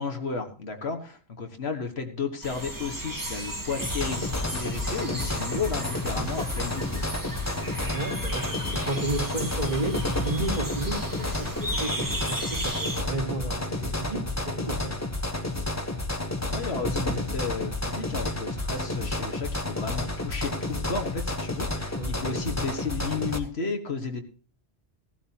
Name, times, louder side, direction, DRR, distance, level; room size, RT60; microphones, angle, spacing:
voice 1, 0.0-7.1 16.5-24.2, left 5 dB, 70° left, 5 dB, 1.8 m, -33 dB
sound 1, 2.4-13.0, right 1 dB, 20° right, 1.8 m, -35 dB
sound 2, 3.8-23.4, left 2 dB, 15° left, 1.2 m, -31 dB
voice 2, 7.8-15.0 21.9-22.3, right 2 dB, 40° right, -1 dB, 3.3 m, -33 dB
17.0 x 12.5 x 2.9 m, 0.38 s
omnidirectional pair, 1.1 m